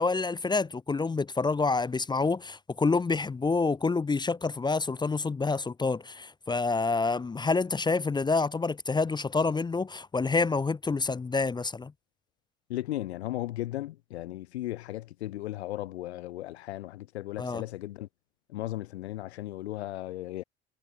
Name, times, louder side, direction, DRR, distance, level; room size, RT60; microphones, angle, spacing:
voice 1, 0.0-11.9 17.4-17.6, left 4 dB, 15° left, 0.5 m, -28 dB
voice 2, 12.7-18.1 18.5-20.4, left 15 dB, 75° left, 2.6 m, -36 dB
figure-of-eight pair, 55°, 33 cm